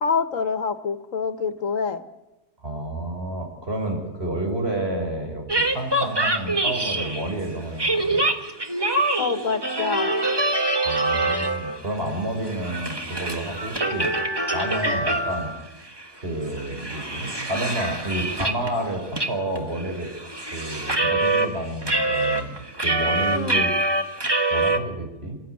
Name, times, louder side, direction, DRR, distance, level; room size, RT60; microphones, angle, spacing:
voice 1, 0.0-2.0 9.2-10.2 23.3-23.7, left 5 dB, 85° left, 10 dB, 1.7 m, -26 dB
voice 2, 2.6-8.3 10.8-14.1 14.5-15.5 16.1-20.1 20.5-22.6 22.8-23.7 24.0-24.1 24.5-25.4, right 1 dB, 50° right, 3 dB, 5.8 m, -30 dB
sound 1, 5.5-7.3 7.8-11.8 12.1-15.6 16.0-16.1 16.5-18.7 19.2-19.3 19.6-21.5 21.8-24.8, right 2 dB, 20° right, 1.7 m, -25 dB
27.0 x 15.0 x 9.6 m, 1.0 s
omnidirectional pair, 1.3 m